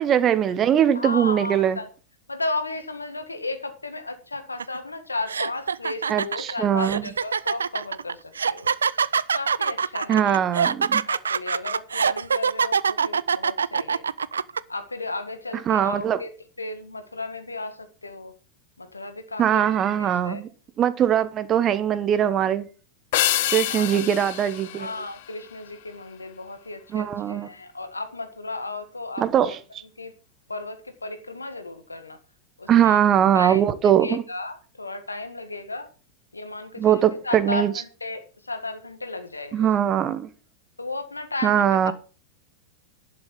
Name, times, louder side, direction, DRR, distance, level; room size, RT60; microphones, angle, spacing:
voice 1, 0.0-1.8 6.1-7.1 10.1-11.0 15.7-16.2 19.4-20.5 20.8-22.7 23.5-24.9 26.9-27.5 29.2-29.6 32.7-34.2 36.8-37.7 39.5-40.3 41.4-41.9, right 10 dB, 30° right, 1.2 m, -21 dB
voice 2, 1.0-1.9 2.3-8.7 9.3-10.4 11.0-14.1 14.7-16.3 16.6-18.3 18.8-19.6 20.0-20.4 23.7-24.0 24.7-29.6 30.0-30.1 30.5-32.2 32.6-33.0 33.3-33.6 34.0-35.9 36.3-39.7 40.8-41.9, left 2 dB, 80° left, 1.7 m, -34 dB
sound 1, 4.6-4.8 5.3-14.6, right 6 dB, 70° right, 0.4 m, -24 dB
sound 2, 23.1-25.8, left 14 dB, 50° left, 0.9 m, -27 dB
11.5 x 7.2 x 5.9 m
figure-of-eight pair, 90°, 0 cm